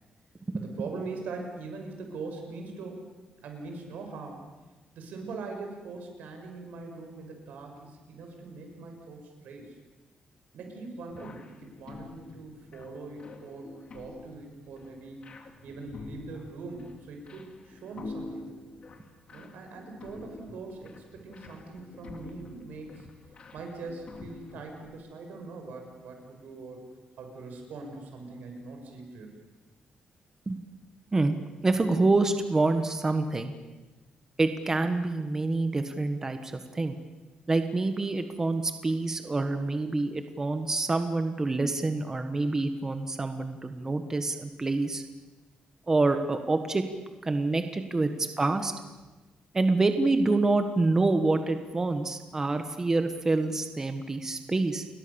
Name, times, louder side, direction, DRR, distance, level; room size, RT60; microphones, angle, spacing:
voice 1, 0.5-3.0 3.4-4.4 4.9-9.8 10.5-15.2 15.6-18.4 19.3-23.1 23.5-26.9 27.2-29.4, right 3 dB, 90° right, 3 dB, 6.4 m, -42 dB
sound 1, 11.1-24.9, left 3 dB, 40° left, 2.6 m, -47 dB
voice 2, 31.6-33.5 34.4-37.0 37.5-45.0 45.9-46.8 47.2-48.7 49.5-54.8, right 3 dB, 20° right, 8 dB, 1.4 m, -27 dB
29.5 x 22.0 x 7.1 m, 1.2 s
wide cardioid pair, 165°, 3 cm